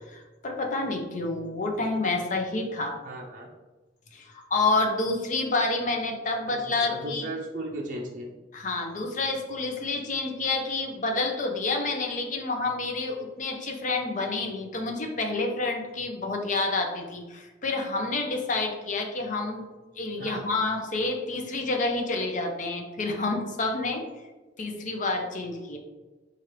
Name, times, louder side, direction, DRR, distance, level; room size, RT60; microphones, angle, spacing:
voice 1, 0.1-3.0 4.1-7.3 8.5-19.7 20.0-24.0 24.6-25.8, left 3 dB, 45° left, 3 dB, 0.6 m, -29 dB
voice 2, 3.0-3.5 6.4-8.3 20.2-20.4, right 1 dB, 45° right, -2 dB, 0.5 m, -36 dB
4.4 x 2.4 x 3.2 m, 1.2 s
head